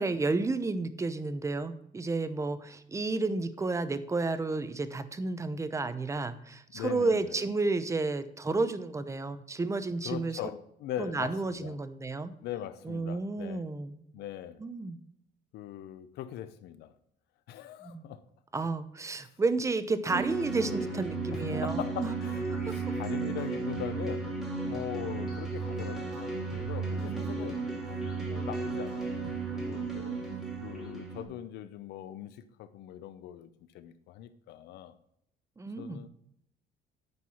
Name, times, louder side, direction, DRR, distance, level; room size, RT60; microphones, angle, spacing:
voice 1, 0.0-10.4 11.0-12.3 12.8-14.0 14.6-15.0 17.8-18.1 18.5-22.1 22.7-22.8 27.0-27.3 30.3-30.4 35.6-36.1, right 3 dB, 15° right, 12 dB, 0.7 m, -31 dB
voice 2, 6.7-7.5 10.0-11.8 12.4-13.7 14.1-14.6 15.5-16.9 17.5-18.2 21.3-24.3 24.6-27.6 28.2-30.2 30.6-33.5 33.7-34.9 35.8-36.1, left 11 dB, 75° left, 12 dB, 0.7 m, -41 dB
sound 1, 20.1-31.2, right 3 dB, ahead, 2.4 m, -34 dB
9.5 x 4.7 x 5.6 m, 0.74 s
cardioid pair, 110°, 17 cm